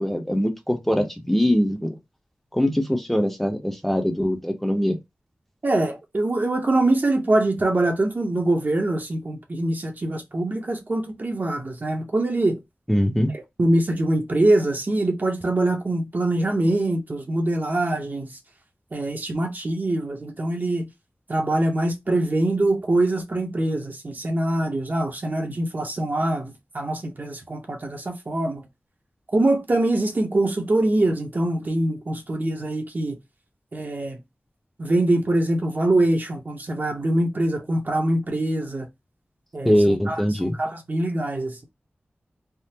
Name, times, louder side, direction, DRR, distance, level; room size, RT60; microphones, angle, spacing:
voice 1, 0.0-1.9 2.5-5.0 12.9-13.4 39.6-40.6, equal, 5° left, 0.7 m, -22 dB
voice 2, 5.6-12.6 13.6-18.3 18.9-20.9 21.3-28.6 29.3-33.2 33.7-34.2 34.8-38.9 39.5-41.6, right 1 dB, 50° right, 0.8 m, -23 dB
3.5 x 2.0 x 2.8 m
wide cardioid pair, 60°, 4 cm